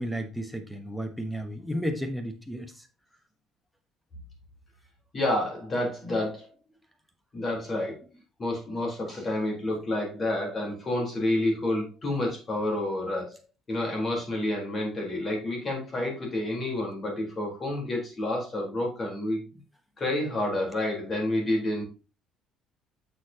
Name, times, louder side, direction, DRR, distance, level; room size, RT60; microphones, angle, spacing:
voice 1, 0.0-2.9, equal, 5° left, 7 dB, 1.2 m, -33 dB
voice 2, 5.1-6.5 7.3-8.0 8.4-13.3 13.7-19.5 20.0-21.8, left 1 dB, 25° left, 0 dB, 3.8 m, -29 dB
8.5 x 6.8 x 2.9 m, 0.31 s
cardioid pair, 145°, 0 cm